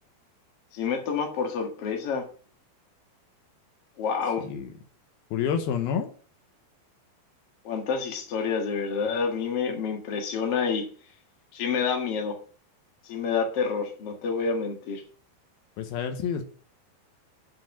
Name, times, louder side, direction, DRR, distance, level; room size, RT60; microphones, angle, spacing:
voice 1, 0.7-2.3 4.0-4.5 7.6-10.9 11.5-12.4 13.0-15.0, left 5 dB, 45° left, 2 dB, 2.3 m, -28 dB
voice 2, 5.3-6.1 15.8-16.4, left 7 dB, 85° left, 6 dB, 2.9 m, -28 dB
7.9 x 5.1 x 7.2 m, 0.42 s
omnidirectional pair, 4.2 m